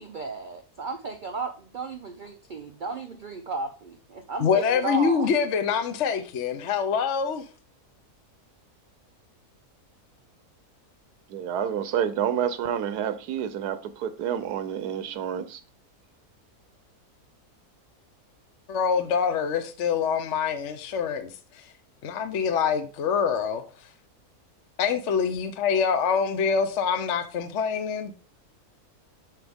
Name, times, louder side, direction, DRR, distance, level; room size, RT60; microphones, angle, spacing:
voice 1, 0.0-5.3, right 3 dB, 65° right, 0.4 m, -34 dB
voice 2, 4.4-7.4 18.7-21.3 22.0-23.6 24.8-28.1, left 6 dB, 55° left, 1.0 m, -25 dB
voice 3, 11.3-15.6, right 9 dB, 85° right, 1.3 m, -29 dB
7.9 x 5.9 x 3.5 m
omnidirectional pair, 1.6 m